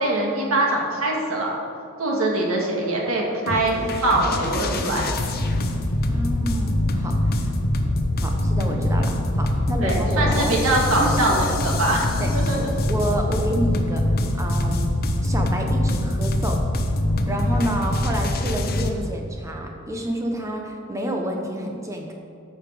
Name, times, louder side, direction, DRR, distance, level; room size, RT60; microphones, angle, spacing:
voice 1, 0.0-1.6 2.0-3.8 4.0-5.0 9.8-12.1 12.3-12.7, right 2 dB, 85° right, -1 dB, 2.0 m, -23 dB
sound 1, 3.5-18.9, left 1 dB, 45° left, 0.8 m, -23 dB
voice 2, 6.0-7.5 8.2-10.6 11.0-11.4 12.2-12.3 12.5-14.9 15.2-16.6 17.3-22.1, right 1 dB, 15° right, 1 dB, 1.0 m, -29 dB
13.5 x 5.7 x 5.1 m, 2.5 s
head